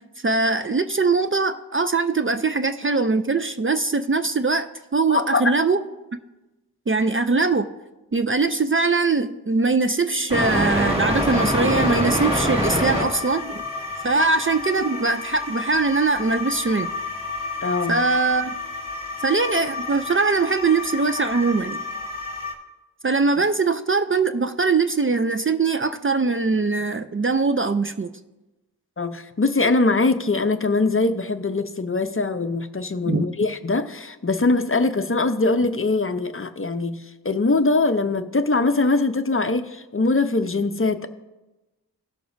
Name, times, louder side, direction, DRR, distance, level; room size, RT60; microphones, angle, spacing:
voice 1, 0.2-5.8 6.9-7.7 8.1-13.7 14.0-16.9 17.9-18.6 19.2-21.8 23.0-28.1 33.1-33.3, right 3 dB, 35° right, 9 dB, 0.4 m, -22 dB
voice 2, 5.1-5.4 17.6-18.0 29.0-41.1, left 3 dB, 35° left, 9 dB, 0.6 m, -22 dB
sound 1, 10.3-22.5, left 1 dB, 15° right, 1.8 m, -27 dB
17.5 x 6.7 x 2.6 m, 1.1 s
wide cardioid pair, 45°, 39 cm